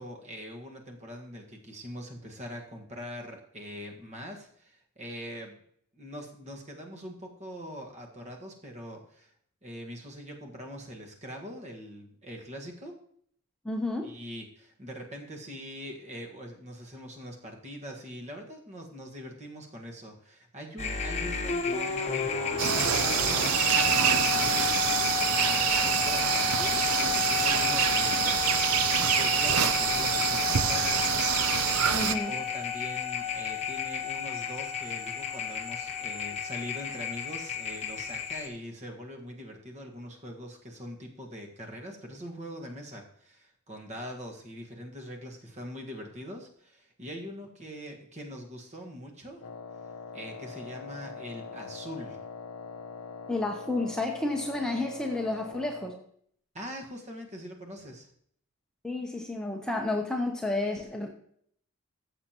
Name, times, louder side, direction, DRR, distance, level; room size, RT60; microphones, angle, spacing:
voice 1, 0.0-5.6 5.9-9.3 9.6-13.0 14.0-24.7 25.3-31.5 31.8-49.5 50.1-52.2 56.5-58.1, equal, 35° right, 1 dB, 1.6 m, -42 dB
voice 2, 13.6-14.1 31.9-32.3 53.3-55.9 58.8-61.1, left 2 dB, 5° left, 1 dB, 0.8 m, -31 dB
sound 1, 20.8-38.5, left 7 dB, 30° left, 1.0 m, -32 dB
sound 2, 22.6-32.2, right 8 dB, 80° right, 0.6 m, -26 dB
Wind instrument woodwind instrument, 49.4-56.1, left 5 dB, 70° left, 0.7 m, -43 dB
14.0 x 7.1 x 3.0 m, 0.65 s
head